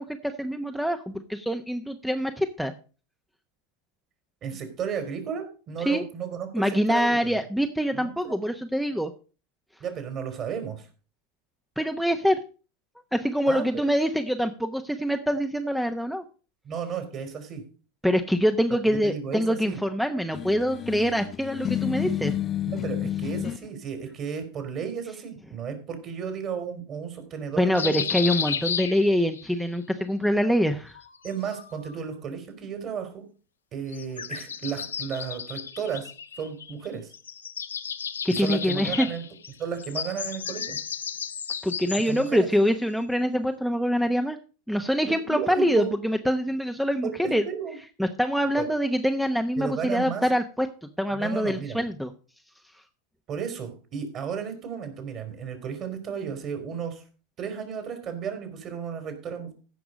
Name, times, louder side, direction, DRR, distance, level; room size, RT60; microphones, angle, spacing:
voice 1, 0.0-2.7 5.8-6.0 6.5-9.1 11.8-12.4 13.1-16.2 18.0-22.4 27.6-31.0 38.2-39.1 41.6-44.4 44.7-47.4 48.0-50.7 51.0-52.1, equal, ahead, 7 dB, 0.9 m, -25 dB
voice 2, 4.4-7.4 7.9-8.4 9.8-10.9 13.5-13.8 16.6-17.6 18.8-19.8 22.7-28.1 28.5-28.6 31.2-33.2 33.7-36.1 36.4-37.1 38.3-39.2 39.6-40.8 42.1-42.5 45.0-45.9 47.0-47.8 48.6-48.7 49.6-50.2 51.1-51.9 53.3-57.0 57.4-59.5, right 7 dB, 40° right, 7 dB, 3.9 m, -34 dB
sound 1, 20.3-23.6, left 10 dB, 35° left, 0.6 m, -30 dB
sound 2, 27.7-29.5 30.9-32.0 33.9-36.9 37.1-42.3, left 7 dB, 85° left, 0.7 m, -33 dB
15.5 x 5.9 x 5.2 m, 0.37 s
hypercardioid pair, 85°, 0 cm